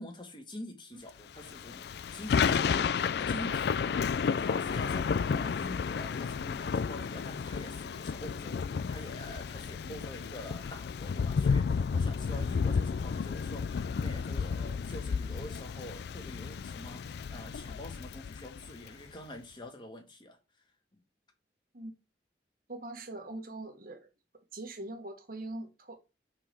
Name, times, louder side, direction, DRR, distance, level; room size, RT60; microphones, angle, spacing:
voice 1, 0.0-20.4 20.9-21.0, left 1 dB, 25° left, 1.5 m, -46 dB
Thunder / Rain, 1.4-18.9, left 6 dB, 65° left, 0.3 m, -32 dB
voice 2, 22.7-24.1 24.5-25.9, right 2 dB, 55° right, 1.6 m, -42 dB
5.9 x 4.7 x 4.7 m
head